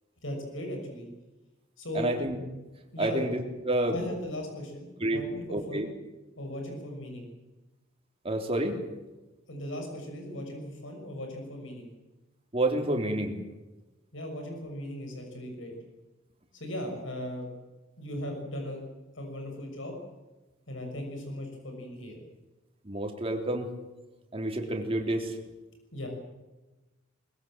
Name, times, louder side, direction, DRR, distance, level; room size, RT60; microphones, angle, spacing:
voice 1, 0.2-1.1 1.8-2.1 2.9-3.2 3.9-5.9 6.4-7.3 9.5-11.9 14.1-15.7 16.5-17.5 18.0-18.8 19.1-20.0 20.7-22.2 25.9-26.1, left 1 dB, 70° left, 3 dB, 6.4 m, -37 dB
voice 2, 1.9-2.4 3.0-4.0 5.0-5.2 5.5-5.9 8.2-8.8 12.5-13.4 22.9-23.7 24.3-25.3, right 1 dB, 30° right, 2 dB, 3.6 m, -29 dB
22.5 x 21.5 x 7.7 m, 1.1 s
head